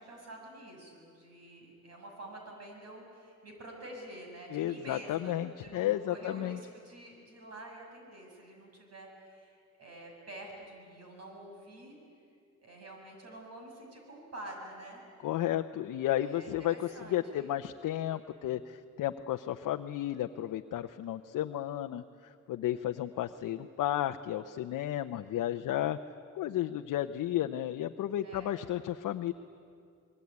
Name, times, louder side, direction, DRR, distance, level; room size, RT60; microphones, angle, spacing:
voice 1, 0.0-12.0 12.6-15.0 16.2-17.5 28.2-28.5, right 1 dB, 50° right, 1 dB, 7.2 m, -48 dB
voice 2, 4.5-6.6 15.2-26.0 26.3-29.3, left 12 dB, 75° left, 6 dB, 0.8 m, -33 dB
26.0 x 21.5 x 9.6 m, 2.3 s
cardioid pair, 130°, 32 cm